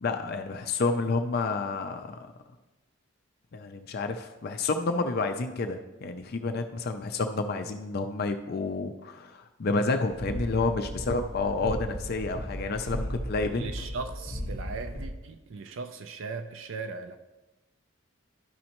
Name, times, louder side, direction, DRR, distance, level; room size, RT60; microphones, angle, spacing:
voice 1, 0.0-2.2 3.5-13.7, left 3 dB, 45° left, 0.4 m, -29 dB
sound 1, 10.1-15.1, equal, 30° right, 2.3 m, -36 dB
voice 2, 13.5-17.2, right 4 dB, 60° right, 0.4 m, -38 dB
12.0 x 5.2 x 2.9 m
head